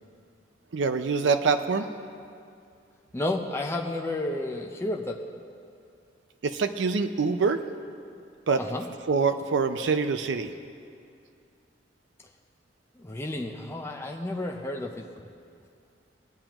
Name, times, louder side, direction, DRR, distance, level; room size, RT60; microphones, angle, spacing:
voice 1, 0.7-1.9 6.4-7.6 8.5-8.6 9.1-10.5, right 5 dB, 80° right, 8 dB, 0.5 m, -25 dB
voice 2, 3.1-5.2 8.6-8.9 13.0-15.1, left 2 dB, 15° left, 1 dB, 0.6 m, -31 dB
20.5 x 8.8 x 2.9 m, 2.4 s
head